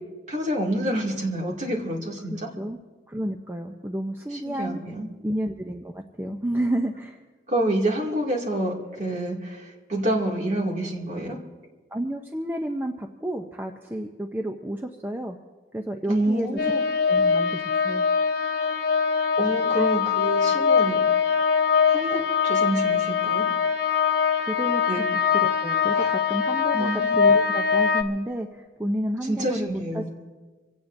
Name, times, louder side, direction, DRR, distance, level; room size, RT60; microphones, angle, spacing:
voice 1, 0.3-2.5 4.3-5.1 7.5-11.4 16.1-16.8 18.6-18.7 19.4-21.0 21.9-23.5 24.9-25.0 25.9-26.1 26.7-27.2 29.3-30.1, right 1 dB, 40° right, -1 dB, 2.3 m, -28 dB
voice 2, 2.3-2.8 3.1-4.8 5.2-7.2 11.9-15.4 15.7-16.5 17.1-18.0 24.4-30.1, right 1 dB, 10° right, 3 dB, 0.5 m, -31 dB
sound 1, 16.6-28.0, left 6 dB, 70° left, 1.0 m, -22 dB
25.5 x 17.0 x 2.6 m, 1.3 s
head